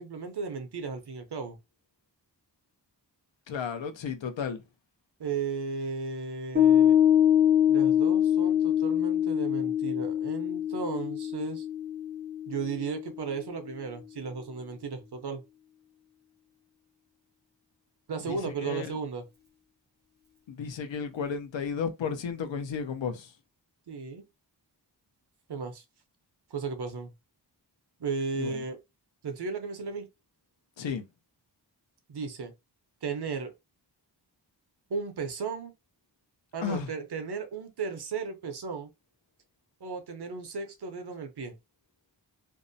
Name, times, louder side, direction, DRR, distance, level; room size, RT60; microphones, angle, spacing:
voice 1, 0.0-1.6 5.2-7.0 7.7-11.7 12.5-15.4 18.1-19.3 23.9-24.3 25.5-25.8 26.5-27.1 28.0-28.8 29.2-30.1 32.1-32.5 33.0-33.5 34.9-35.7 36.5-38.9 39.8-41.5, right 5 dB, 60° right, 0.7 m, -35 dB
voice 2, 3.5-4.6 18.3-19.0 20.5-23.3 28.4-28.6 30.8-31.1 36.6-36.9, left 6 dB, 85° left, 0.6 m, -33 dB
Piano, 6.6-13.3, left 10 dB, 25° right, 0.6 m, -24 dB
2.7 x 2.0 x 2.5 m
wide cardioid pair, 65°, 44 cm